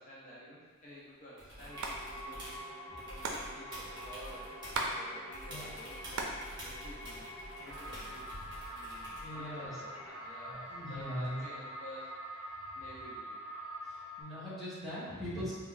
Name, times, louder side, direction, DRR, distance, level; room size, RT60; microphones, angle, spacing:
voice 1, 0.0-2.8 3.1-4.6 4.9-7.3 7.6-8.3 8.7-13.4 13.7-13.8, equal, 40° left, -8 dB, 0.6 m, -52 dB
sound 1, 1.4-2.6 3.0-5.0 5.3-9.4 11.2-11.3, equal, 20° right, 1.3 m, -48 dB
sound 2, 1.7-14.2, equal, 80° left, 0.9 m, -46 dB
Hands, 1.8-2.0 2.2-2.3 2.5-5.0 5.3-6.4 6.8-7.6 8.1-8.7, right 3 dB, 80° right, 0.4 m, -38 dB
voice 2, 9.2-9.7 10.5-11.5 14.2-15.5, equal, ahead, -12 dB, 1.1 m, -40 dB
3.4 x 2.3 x 3.8 m, 1.4 s
head